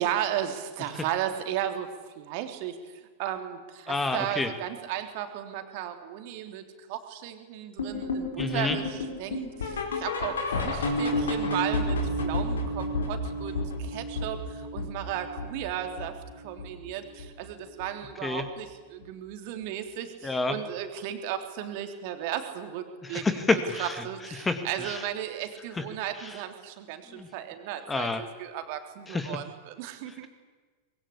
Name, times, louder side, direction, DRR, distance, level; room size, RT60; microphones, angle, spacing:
voice 1, 0.0-6.6 6.9-16.1 16.4-23.4 23.8-30.3, right 11 dB, 45° right, 7 dB, 3.4 m, -35 dB
voice 2, 3.9-4.5 8.4-8.8 18.2-18.4 20.2-20.6 23.0-24.0 24.4-25.0 25.8-25.9 26.2-26.3 27.1-27.3 27.9-28.2 29.1-29.4, left 3 dB, 15° left, 9 dB, 2.2 m, -29 dB
sound 1, 7.8-16.9 17.2-17.5 17.8-17.9 18.4-18.5 19.0-19.1, left 1 dB, 65° left, 4.6 m, -31 dB
24.5 x 22.0 x 8.6 m, 1.4 s
figure-of-eight pair, 90°, 0 cm